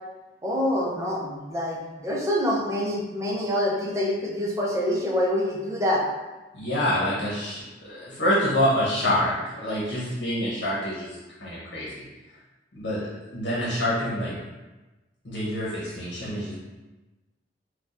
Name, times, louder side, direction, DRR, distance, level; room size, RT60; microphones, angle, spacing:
voice 1, 0.4-6.0, left 1 dB, 15° right, -4 dB, 0.6 m, -26 dB
voice 2, 6.5-11.9 12.7-14.3 15.2-16.5, left 1 dB, 75° left, -8 dB, 1.0 m, -27 dB
4.4 x 2.3 x 2.5 m, 1.1 s
head